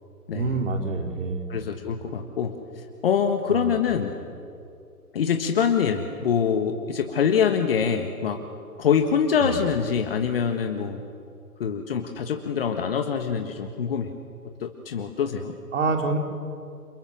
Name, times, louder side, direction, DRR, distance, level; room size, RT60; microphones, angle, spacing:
voice 1, 0.3-1.5 3.5-3.7 9.4-9.6 15.7-16.2, right 3 dB, 50° right, 4 dB, 4.0 m, -27 dB
voice 2, 1.5-2.5 3.0-4.1 5.1-8.4 8.8-11.0 11.6-14.1 14.6-15.5, left 7 dB, 40° left, 5 dB, 1.7 m, -24 dB
29.5 x 27.5 x 7.4 m, 2.5 s
figure-of-eight pair, 145°, 46 cm